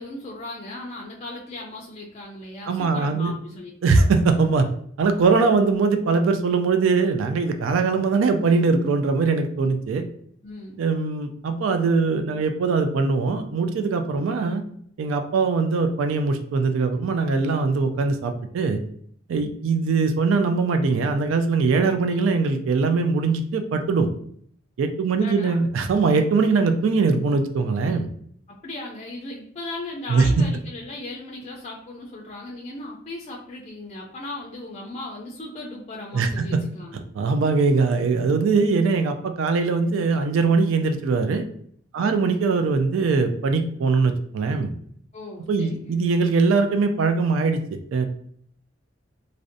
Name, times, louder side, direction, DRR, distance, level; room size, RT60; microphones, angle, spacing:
voice 1, 0.0-3.7 10.4-10.8 25.1-25.6 28.5-37.0 42.0-42.2 45.1-46.1, left 2 dB, 35° left, -2 dB, 0.4 m, -37 dB
voice 2, 2.7-3.3 3.8-4.7 5.0-10.0 10.8-14.6 15.0-18.8 19.3-24.1 24.8-28.1 30.1-30.5 36.1-36.6 37.2-41.4 41.9-44.7 45.5-47.6 47.9-48.1, right 4 dB, 85° right, 7 dB, 0.3 m, -21 dB
2.5 x 2.1 x 2.5 m, 0.63 s
head